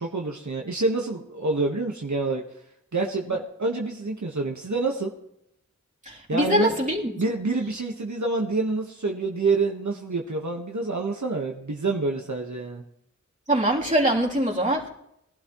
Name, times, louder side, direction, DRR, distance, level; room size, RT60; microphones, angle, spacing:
voice 1, 0.0-2.4 2.9-5.1 6.3-6.7 7.2-12.8, right 3 dB, 75° right, 0 dB, 1.4 m, -27 dB
voice 2, 6.1-7.1 13.5-14.9, right 1 dB, 25° right, -4 dB, 3.3 m, -23 dB
21.0 x 11.5 x 3.1 m, 0.76 s
wide cardioid pair, 40°, 29 cm